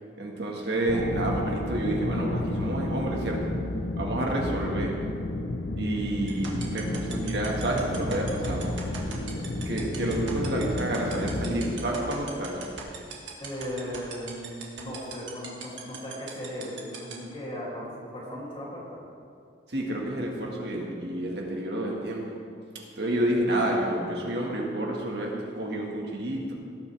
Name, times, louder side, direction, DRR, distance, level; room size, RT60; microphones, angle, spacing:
voice 1, 0.2-3.4 4.0-4.9 5.8-8.7 9.7-12.6 19.7-22.2 23.0-26.5, right 1 dB, 60° right, -1 dB, 1.7 m, -29 dB
sound 1, 0.9-11.8, left 1 dB, 70° left, 1.0 m, -31 dB
sound 2, 6.3-17.1, right 6 dB, 75° right, 1.8 m, -38 dB
voice 2, 13.4-19.0 23.2-23.3, equal, 30° left, -6 dB, 2.8 m, -37 dB
18.0 x 8.5 x 3.5 m, 2.4 s
head